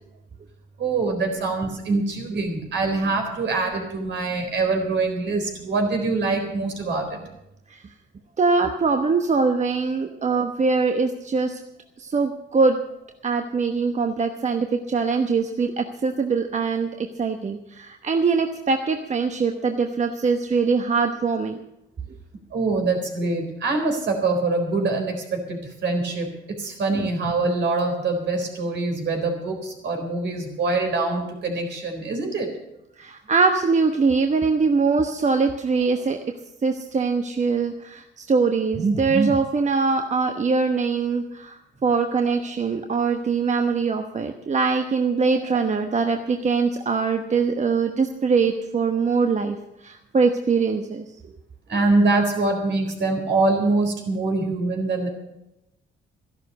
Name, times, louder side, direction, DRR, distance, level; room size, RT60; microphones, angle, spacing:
voice 1, 0.8-7.2 22.5-32.5 45.3-45.4 51.7-55.1, right 3 dB, 65° right, 4 dB, 4.1 m, -24 dB
voice 2, 8.4-11.6 12.0-12.8 13.2-21.6 27.0-27.1 33.0-36.2 36.6-49.6 49.8-51.0, right 4 dB, 35° right, 5 dB, 1.1 m, -22 dB
13.0 x 11.5 x 6.8 m, 0.89 s
cardioid pair, 90°, 20 cm